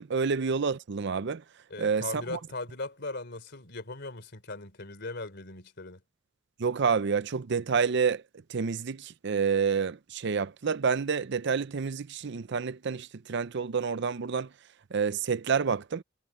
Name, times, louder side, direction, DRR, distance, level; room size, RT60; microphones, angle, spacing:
voice 1, 0.0-1.4 1.8-2.4 6.6-8.2 8.5-14.5 14.9-16.0, right 5 dB, 60° right, 0.6 m, -28 dB
voice 2, 1.7-6.0, left 2 dB, 60° left, 3.5 m, -39 dB
head